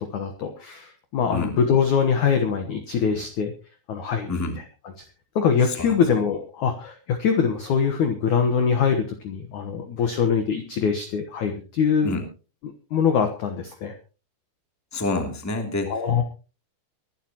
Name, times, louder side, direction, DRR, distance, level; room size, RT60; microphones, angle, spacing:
voice 1, 0.0-3.5 3.9-4.3 5.4-12.1 12.9-13.9 15.9-16.2, left 6 dB, 70° left, 6 dB, 1.9 m, -23 dB
voice 2, 4.3-4.6 5.6-6.0 12.0-12.2 14.9-15.9, left 2 dB, 5° left, 3 dB, 1.8 m, -27 dB
23.5 x 11.5 x 3.0 m, 0.34 s
omnidirectional pair, 5.3 m